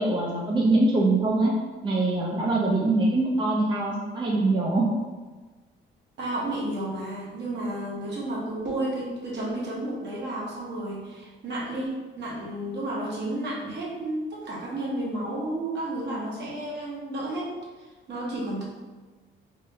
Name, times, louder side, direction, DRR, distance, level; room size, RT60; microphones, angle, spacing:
voice 1, 0.0-1.5 1.8-4.9, right 2 dB, 20° right, -3 dB, 0.5 m, -23 dB
voice 2, 6.2-17.5 18.1-18.6, right 1 dB, 55° right, -4 dB, 1.2 m, -32 dB
3.5 x 2.6 x 3.4 m, 1.3 s
cardioid pair, 110°, 21 cm